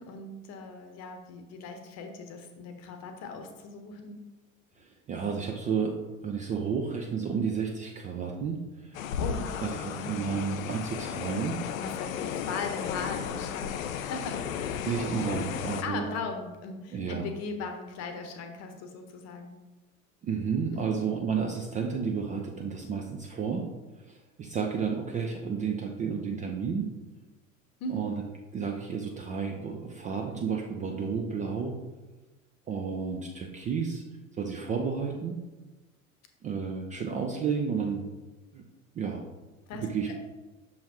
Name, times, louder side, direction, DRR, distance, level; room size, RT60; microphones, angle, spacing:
voice 1, 0.0-4.2 9.2-10.2 11.7-14.8 15.8-19.5 20.7-21.0 27.8-28.1 39.7-40.1, left 3 dB, 40° left, 5 dB, 0.9 m, -38 dB
voice 2, 4.8-6.0 6.2-9.0 9.6-11.7 14.8-16.1 16.9-17.3 20.2-23.6 24.0-26.9 27.9-28.2 28.5-31.8 32.7-34.0 34.4-35.4 36.4-38.0 38.5-38.6 39.0-39.2 39.7-40.1, right 6 dB, 20° right, 2 dB, 0.4 m, -31 dB
sound 1, 8.9-15.8, left 8 dB, 75° left, 0.5 m, -34 dB
6.2 x 5.5 x 2.9 m, 1.2 s
figure-of-eight pair, 75°, 41 cm